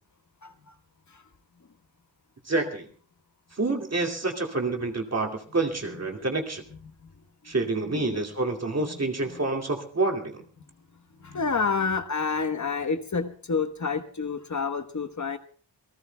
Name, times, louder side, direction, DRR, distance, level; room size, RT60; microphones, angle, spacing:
voice 1, 0.4-0.7 1.1-1.2 6.8-7.1 7.5-7.6 7.9-8.2 8.8-9.0 9.3-9.4 11.2-15.4, left 5 dB, 45° left, 8 dB, 1.2 m, -29 dB
voice 2, 2.5-2.9 3.6-6.6 7.4-10.4, right 3 dB, 35° right, 2 dB, 2.5 m, -28 dB
27.5 x 19.0 x 2.3 m, 0.42 s
wide cardioid pair, 85°, 42 cm